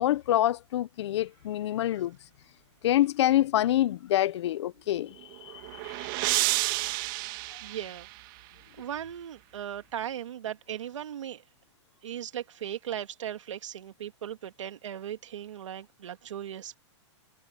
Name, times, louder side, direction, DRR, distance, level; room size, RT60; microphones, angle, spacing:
voice 1, 0.0-2.2 2.8-5.1 5.4-5.5 5.8-5.9, left 13 dB, 65° left, 0.9 m, -26 dB
sound 1, 5.2-8.5, right 23 dB, 45° right, 1.9 m, -31 dB
voice 2, 7.6-8.1 8.8-11.4 12.0-16.8, right 10 dB, 80° right, 2.6 m, -37 dB
hypercardioid pair, 140°, 16 cm